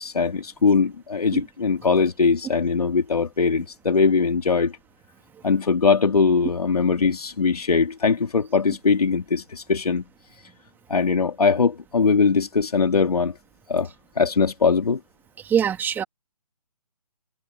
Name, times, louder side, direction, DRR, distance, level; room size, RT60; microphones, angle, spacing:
voice 1, 0.0-4.7 5.4-10.0 10.9-13.3 13.7-13.9 14.2-15.0, left 5 dB, 75° left, 2.7 m, -21 dB
voice 2, 15.4-16.0, right 8 dB, 10° right, 2.3 m, -22 dB
figure-of-eight pair, 150°, 20 cm